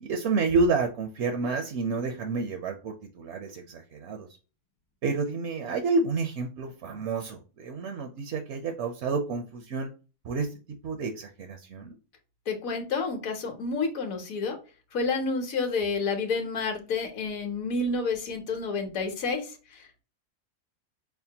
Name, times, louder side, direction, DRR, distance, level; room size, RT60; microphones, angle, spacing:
voice 1, 0.0-4.3 5.0-9.9 10.2-10.5 10.8-11.9, right 4 dB, 60° right, 4 dB, 0.8 m, -29 dB
voice 2, 12.5-14.6 14.9-20.0, left 4 dB, 65° left, 4 dB, 1.3 m, -30 dB
5.7 x 2.2 x 2.7 m, 0.34 s
omnidirectional pair, 1.6 m